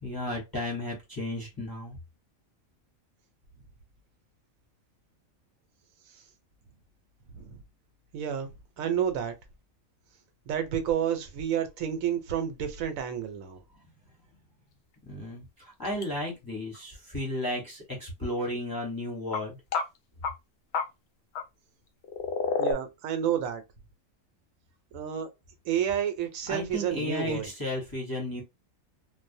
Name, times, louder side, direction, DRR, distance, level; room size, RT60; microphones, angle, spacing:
voice 1, 0.0-2.0 15.1-19.6 26.5-28.4, left 1 dB, 20° left, 0.7 m, -34 dB
voice 2, 7.3-7.6 8.1-9.3 10.5-13.6 22.6-23.6 24.9-25.3 25.6-27.5, right 9 dB, 85° right, 1.0 m, -30 dB
sound 1, 15.9-16.0 16.7-16.8 19.3-19.4 19.7-19.8 20.2-20.3 20.7-20.8 21.4-21.5 22.0-22.7, left 5 dB, 65° left, 0.7 m, -28 dB
2.4 x 2.0 x 2.6 m
omnidirectional pair, 1.4 m